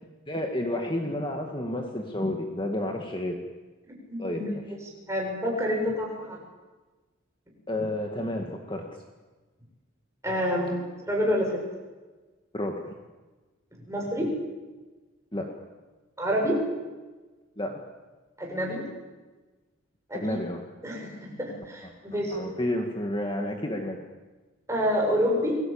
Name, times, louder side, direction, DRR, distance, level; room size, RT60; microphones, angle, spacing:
voice 1, 0.3-3.4 4.2-4.6 7.7-8.9 12.5-12.9 15.3-15.5 17.6-17.8 20.1-20.6 21.8-21.9 22.3-24.0, left 1 dB, 25° left, 3 dB, 2.1 m, -30 dB
voice 2, 4.1-4.5 5.1-6.4 10.2-10.8 11.1-11.6 13.9-14.3 16.2-16.6 18.4-18.8 20.1-20.4 20.8-22.4 24.7-25.6, equal, 15° right, -1 dB, 7.5 m, -27 dB
29.0 x 22.0 x 8.9 m, 1.3 s
head